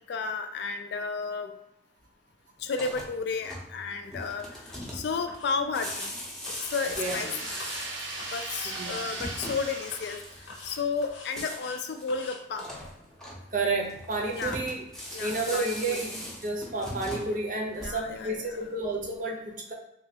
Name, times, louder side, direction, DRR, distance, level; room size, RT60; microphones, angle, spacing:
voice 1, 0.1-1.5 2.6-6.1 6.7-7.5 8.3-10.2 10.6-12.7 14.3-14.6 15.1-16.1 17.8-18.6, left 4 dB, 60° left, 6 dB, 0.3 m, -32 dB
sound 1, 2.6-18.3, equal, 5° left, 0.6 m, -41 dB
sound 2, 4.7-5.0 5.3-5.6 5.9-6.1 6.5-7.3 7.6-7.9 8.2-8.5 8.8-9.1 9.3-9.6 9.9-10.2 10.5-11.8 12.1-12.4, left 3 dB, 90° left, 0.7 m, -45 dB
sound 3, 6.7-10.8, right 2 dB, 90° right, 0.7 m, -38 dB
voice 2, 7.0-7.3 8.6-9.0 13.5-14.8 15.2-19.7, right 3 dB, 45° right, -1 dB, 0.6 m, -31 dB
3.1 x 2.3 x 2.7 m, 0.83 s
head